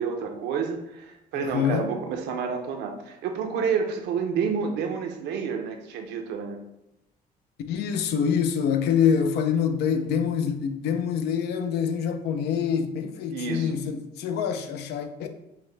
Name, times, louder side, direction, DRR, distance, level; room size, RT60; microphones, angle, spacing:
voice 1, 0.0-6.6 13.3-13.8, right 6 dB, 80° right, 0.7 m, -29 dB
voice 2, 1.4-1.9 7.7-15.3, left 7 dB, 75° left, 0.5 m, -25 dB
5.6 x 2.1 x 3.3 m
cardioid pair, 110°, 17 cm